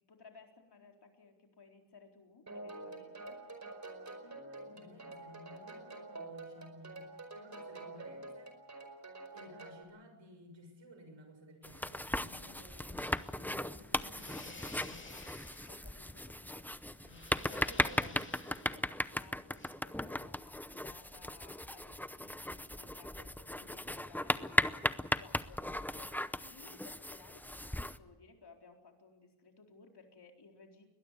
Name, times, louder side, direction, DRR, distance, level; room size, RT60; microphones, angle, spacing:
voice 1, 0.1-3.4 15.7-16.7 17.4-30.9, left 4 dB, 50° left, 3 dB, 4.3 m, -59 dB
sound 1, 2.5-9.8, right 2 dB, 35° right, 5.0 m, -48 dB
voice 2, 4.2-7.1 7.3-8.6 9.3-15.3 17.0-18.3 23.6-23.7, equal, 60° right, 7 dB, 6.8 m, -56 dB
sound 2, 11.6-28.0, left 1 dB, 5° left, 0.7 m, -37 dB
sound 3, 13.0-19.7, left 2 dB, 25° left, 2.4 m, -54 dB
22.0 x 20.0 x 8.4 m, 1.1 s
cardioid pair, 90°, 49 cm